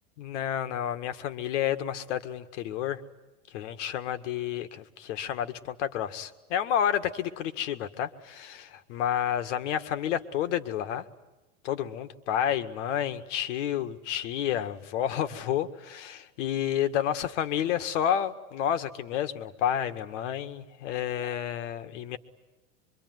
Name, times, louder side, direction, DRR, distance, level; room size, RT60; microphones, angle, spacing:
voice 1, 0.2-3.0 3.5-11.0 11.6-22.2, left 10 dB, 55° left, 10 dB, 1.9 m, -30 dB
25.0 x 24.0 x 9.5 m, 1.1 s
supercardioid pair, 155°, 43 cm